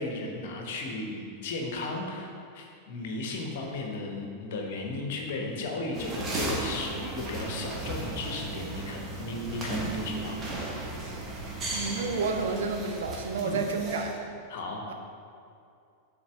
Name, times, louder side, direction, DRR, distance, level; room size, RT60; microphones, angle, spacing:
voice 1, 0.0-10.4 13.4-13.7 14.5-14.8, left 2 dB, 55° left, 1 dB, 1.1 m, -35 dB
sound 1, 5.9-14.1, right 2 dB, 25° right, 1.3 m, -35 dB
voice 2, 11.7-14.3 14.9-15.0, right 4 dB, 60° right, 4 dB, 0.6 m, -30 dB
7.1 x 3.9 x 6.0 m, 2.5 s
figure-of-eight pair, 90°, 0 cm